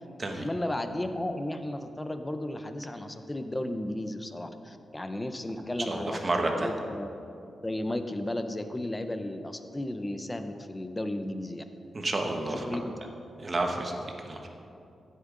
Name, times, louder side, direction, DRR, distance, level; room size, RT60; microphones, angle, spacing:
voice 1, 0.3-7.1 7.6-11.6 12.5-13.0, left 1 dB, 10° left, 8 dB, 0.5 m, -34 dB
voice 2, 5.9-6.7 11.9-12.6 13.4-14.0 14.2-14.5, right 2 dB, 25° right, 3 dB, 1.0 m, -30 dB
15.0 x 8.1 x 3.7 m, 2.7 s
wide cardioid pair, 180°, 0 cm